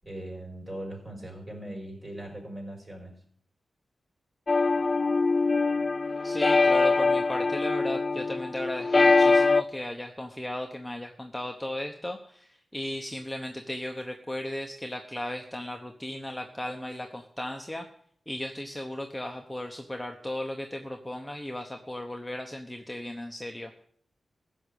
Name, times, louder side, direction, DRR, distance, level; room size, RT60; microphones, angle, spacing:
voice 1, 0.0-3.2, right 1 dB, 25° right, 0 dB, 5.5 m, -40 dB
sound 1, 4.5-9.6, left 3 dB, 40° left, 0.5 m, -23 dB
voice 2, 6.2-17.9 18.3-23.8, left 1 dB, 5° left, 3 dB, 1.0 m, -36 dB
15.5 x 6.4 x 8.4 m, 0.63 s
wide cardioid pair, 100°, 0 cm